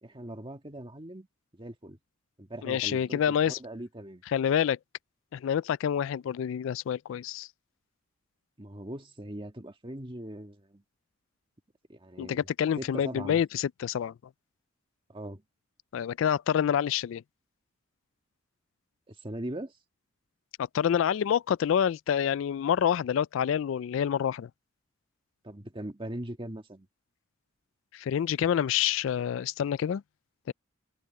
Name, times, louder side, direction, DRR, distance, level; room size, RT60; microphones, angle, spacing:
voice 1, 0.0-1.3 1.5-2.0 2.4-4.2 8.6-10.8 11.9-12.5 12.8-13.4 15.1-15.4 19.1-19.7 25.4-26.9, right 1 dB, 25° right, 1.7 m, -40 dB
voice 2, 2.6-3.6 4.3-4.8 5.3-7.5 12.2-14.1 15.9-17.2 20.7-24.5 27.9-30.0 30.5-30.6, left 9 dB, 70° left, 0.3 m, -27 dB
head